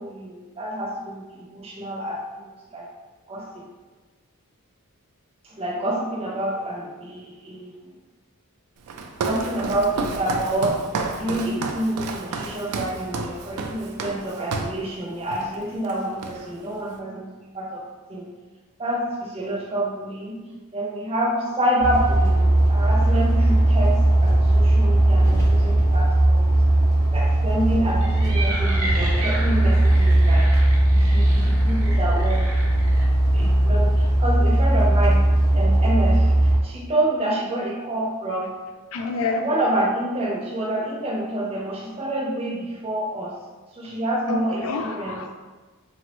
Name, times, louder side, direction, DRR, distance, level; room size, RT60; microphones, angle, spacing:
voice 1, 0.0-2.9 3.3-3.7 5.4-7.9 9.3-10.8 11.1-17.8 18.1-18.3 18.8-26.5 27.1-30.5 30.9-32.5 33.3-35.2 35.5-38.5 39.4-43.4 43.7-45.3, right 1 dB, 25° right, -3 dB, 0.5 m, -28 dB
Walk footsteps, 8.9-14.8 15.3-15.6 15.8-16.7, right 4 dB, 80° right, 0.3 m, -31 dB
sound 1, 21.8-36.6, right 1 dB, 15° left, 0.7 m, -18 dB
sound 2, 27.9-33.1, right 1 dB, 65° right, 0.7 m, -33 dB
voice 2, 38.9-39.4 44.3-45.3, left 3 dB, 70° left, 5 dB, 0.4 m, -27 dB
3.4 x 2.0 x 2.9 m, 1.3 s
head